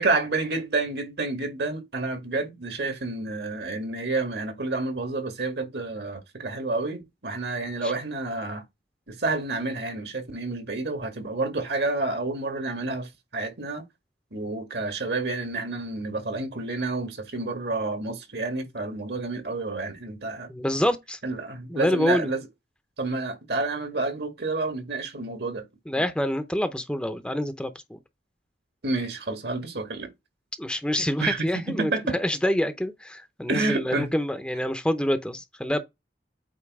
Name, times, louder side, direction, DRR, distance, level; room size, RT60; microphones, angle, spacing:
voice 1, 0.0-8.6 9.1-13.8 14.3-20.5 21.2-22.5 23.0-25.6 26.0-26.1 28.8-30.1 31.2-32.2 33.5-34.2, right 3 dB, 65° right, 1.9 m, -29 dB
voice 2, 20.5-21.2 21.7-22.3 25.9-28.0 30.6-35.8, equal, 5° left, 0.6 m, -27 dB
8.5 x 2.8 x 4.7 m
head